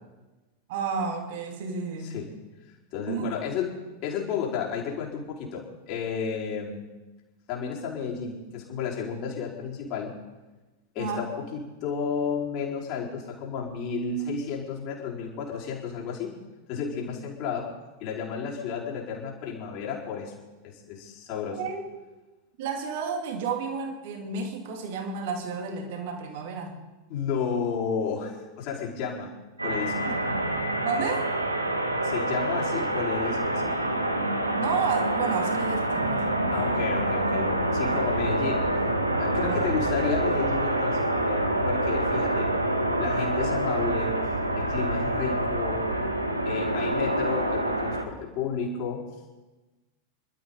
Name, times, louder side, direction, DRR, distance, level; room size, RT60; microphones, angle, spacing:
voice 1, 0.7-2.1 3.1-3.4 11.0-11.3 21.6-21.8 22.6-26.7 30.0-30.1 30.8-31.3 34.5-36.3 39.4-39.7, right 5 dB, 50° right, 3 dB, 2.8 m, -31 dB
voice 2, 2.0-2.3 2.9-3.7 4.0-6.8 7.5-10.2 10.9-16.4 16.7-17.7 18.0-20.4 20.6-21.6 27.1-29.4 29.6-30.1 32.0-33.7 36.5-38.7 39.2-42.5 43.0-44.2 44.6-45.9 46.4-49.0, left 6 dB, 45° left, -3 dB, 4.3 m, -32 dB
sound 1, 29.6-48.0, right 1 dB, 85° right, 1.6 m, -26 dB
27.0 x 12.5 x 3.9 m, 1.2 s
figure-of-eight pair, 90°, 0 cm